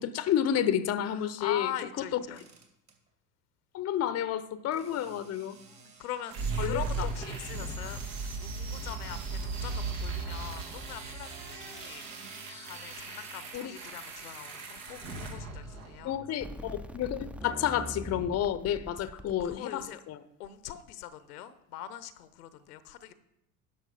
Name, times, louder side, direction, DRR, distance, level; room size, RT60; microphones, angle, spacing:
voice 1, 0.0-1.7 2.1-2.2 3.7-5.6 6.6-6.8 12.5-12.7 13.5-13.8 16.0-20.2, left 10 dB, 35° left, 15 dB, 0.7 m, -30 dB
voice 2, 1.1-2.5 4.8-12.0 12.4-16.2 19.4-20.0 20.4-23.1, left 11 dB, 75° left, 14 dB, 0.8 m, -42 dB
sound 1, 2.3-2.9 4.7-9.0 10.2-16.1, right 5 dB, 35° right, 2.7 m, -53 dB
sound 2, 6.3-16.3, right 3 dB, 70° right, 1.9 m, -37 dB
sound 3, 16.4-19.6, equal, 5° right, 0.5 m, -42 dB
11.5 x 5.9 x 4.9 m, 0.80 s
hypercardioid pair, 70°, 46 cm